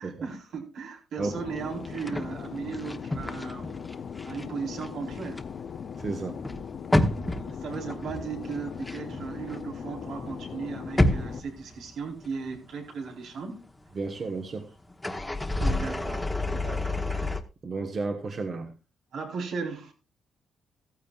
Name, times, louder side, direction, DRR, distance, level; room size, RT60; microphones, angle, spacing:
voice 1, 0.0-3.7 4.2-5.4 7.4-13.6 15.6-17.3 19.1-19.9, right 5 dB, 80° right, 4.2 m, -37 dB
Fixed-wing aircraft airplane, 1.2-11.4, left 7 dB, 50° left, 0.6 m, -39 dB
sound 1, 1.8-4.5 4.7-9.9 10.2-12.3 12.6-12.7 14.9-17.4, left 1 dB, 10° left, 1.1 m, -30 dB
voice 2, 6.0-6.4 13.9-14.7 16.7-16.8 17.2-17.3 17.6-18.7, right 3 dB, 40° right, 1.4 m, -33 dB
15.0 x 14.5 x 2.4 m
cardioid pair, 135°, 0 cm